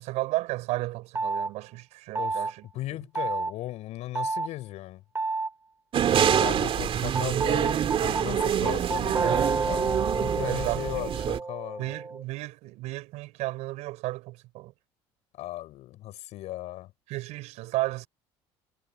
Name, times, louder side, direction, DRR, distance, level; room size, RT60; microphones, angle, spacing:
voice 1, 0.0-2.6 8.6-9.6 10.4-11.4 11.8-14.7 17.1-18.1, right 19 dB, 75° right, 5.5 m, -33 dB
sound 1, 1.2-1.5 2.2-2.5 3.2-3.5 4.2-4.5 5.2-5.5 6.2-6.5 7.2-12.2, right 3 dB, 20° right, 3.7 m, -30 dB
voice 2, 2.7-5.0 6.3-12.0 15.4-16.9, left 15 dB, 70° left, 7.0 m, -37 dB
sound 2, 5.9-11.4, right 9 dB, 50° right, 2.7 m, -26 dB
supercardioid pair, 85°, 12 cm